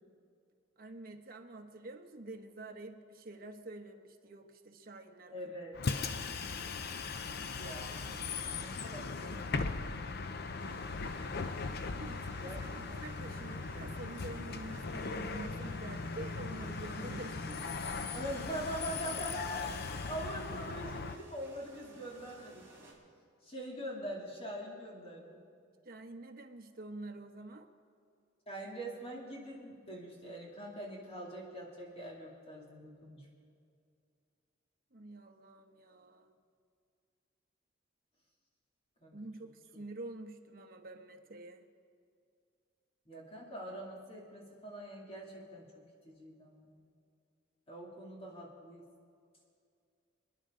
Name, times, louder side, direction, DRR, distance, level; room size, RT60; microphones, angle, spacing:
voice 1, 0.8-5.7 6.0-6.2 11.9-17.7 25.8-27.7 34.9-36.3 39.1-41.6, right 2 dB, 50° right, 5 dB, 1.1 m, -47 dB
voice 2, 5.3-5.7 6.9-7.0 7.3-8.1 8.4-9.9 10.2-10.6 12.4-12.8 18.1-22.7 23.4-25.4 28.5-33.3 39.0-39.1 43.1-45.6 46.0-46.9 47.7-48.8, right 1 dB, 30° left, -3 dB, 2.8 m, -44 dB
Bus, 5.7-21.2, left 4 dB, 55° left, 0.7 m, -39 dB
sound 1, 10.6-22.9, right 3 dB, 15° right, 3.9 m, -56 dB
27.0 x 10.5 x 3.8 m, 2.3 s
head